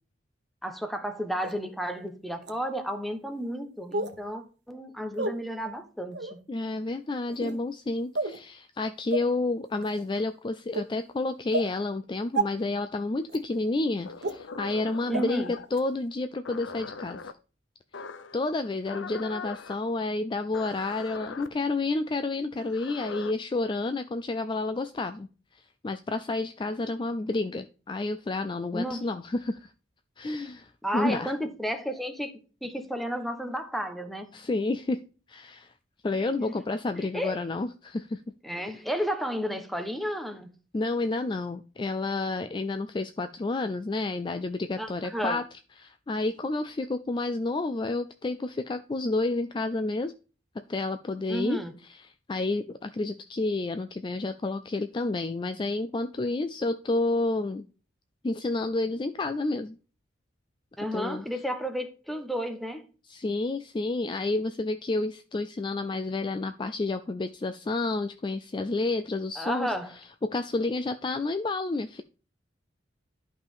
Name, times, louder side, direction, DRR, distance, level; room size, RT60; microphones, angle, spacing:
voice 1, 0.6-6.4 15.1-15.5 28.7-29.1 30.8-34.3 36.2-36.6 37.1-37.4 38.4-40.5 44.8-45.4 51.3-51.7 60.8-62.8 69.4-69.9, equal, ahead, 1.0 m, -32 dB
sound 1, 1.4-1.5 2.4-2.5 3.9-4.2 5.1-5.3 6.1-6.3 7.3-7.6 8.1-8.4 9.1-9.2 9.8-10.0 10.7-10.8 11.5-11.7 12.3-12.4 13.3-13.4 14.2-14.3 15.1-15.2 15.7-15.8, right 3 dB, 60° right, 1.1 m, -29 dB
voice 2, 6.5-17.3 18.3-25.3 25.5-29.7 30.2-31.3 34.3-35.0 35.3-35.7 36.0-38.2 40.7-45.4 45.8-50.1 50.7-57.7 58.2-59.8 60.9-61.2 63.1-69.7 70.2-72.0, left 2 dB, 25° left, 0.3 m, -30 dB
sound 2, 14.0-15.7 16.4-17.3 17.9-18.4 18.8-19.8 20.5-21.5 22.6-23.3, left 4 dB, 85° left, 0.6 m, -41 dB
11.5 x 5.2 x 3.6 m
head